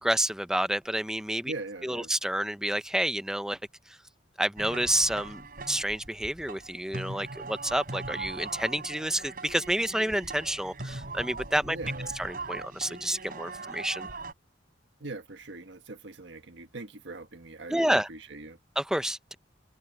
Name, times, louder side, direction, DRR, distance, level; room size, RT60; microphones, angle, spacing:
voice 1, 0.0-1.5 1.8-3.6 3.9-4.0 4.4-5.4 5.7-11.8 12.2-14.1 17.7-18.1 18.8-19.3, right 1 dB, 5° right, 0.7 m, -29 dB
voice 2, 1.4-2.1 11.7-12.1 15.0-18.6, right 2 dB, 70° right, 1.5 m, -41 dB
sound 1, 4.6-14.3, right 3 dB, 50° right, 4.7 m, -40 dB
head